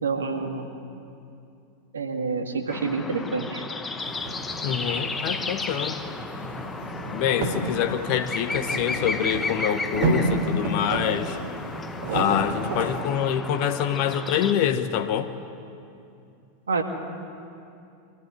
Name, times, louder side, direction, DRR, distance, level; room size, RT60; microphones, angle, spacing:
voice 1, 0.0-0.7 1.9-3.6 16.7-16.8, right 4 dB, 80° right, 5 dB, 1.9 m, -27 dB
sound 1, 2.7-14.5, left 3 dB, 15° left, 1.3 m, -34 dB
sound 2, 4.0-13.0, right 2 dB, 60° right, 3.5 m, -31 dB
voice 2, 4.6-6.0 7.1-11.4 12.1-15.3, left 9 dB, 55° left, 9 dB, 1.1 m, -26 dB
23.0 x 14.5 x 10.0 m, 2.6 s
hypercardioid pair, 90°, 0 cm